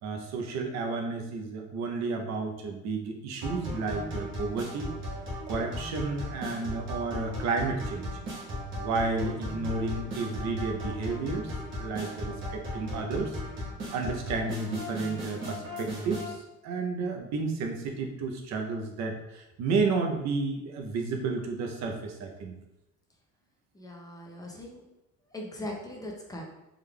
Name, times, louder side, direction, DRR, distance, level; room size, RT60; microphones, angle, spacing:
voice 1, 0.0-4.9 5.5-8.1 8.8-11.5 11.8-13.4 13.9-22.6, right 4 dB, 60° right, 3 dB, 0.6 m, -32 dB
sound 1, 3.4-16.3, left 1 dB, 40° right, 1.0 m, -37 dB
voice 2, 23.7-24.8 25.3-26.4, left 1 dB, 10° left, -1 dB, 0.4 m, -40 dB
3.6 x 3.3 x 2.2 m, 0.90 s
cardioid pair, 165°, 31 cm